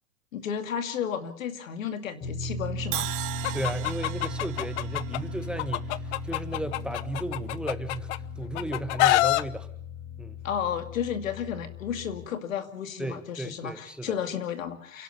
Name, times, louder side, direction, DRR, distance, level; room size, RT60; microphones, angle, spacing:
voice 1, 0.3-3.1 10.4-15.0, left 8 dB, 85° left, 8 dB, 2.5 m, -33 dB
sound 1, 2.2-12.3, left 2 dB, 30° left, 3.8 m, -37 dB
Crash cymbal, 2.9-7.0, right 16 dB, 50° right, 1.7 m, -39 dB
Chicken rooster, 3.4-5.2 5.6-8.2 8.5-9.4, left 16 dB, 65° left, 0.9 m, -25 dB
voice 2, 3.5-9.7 10.2-10.4 13.0-14.1, right 1 dB, ahead, 9 dB, 1.5 m, -35 dB
28.5 x 11.5 x 9.3 m, 0.66 s
hypercardioid pair, 115°, 39 cm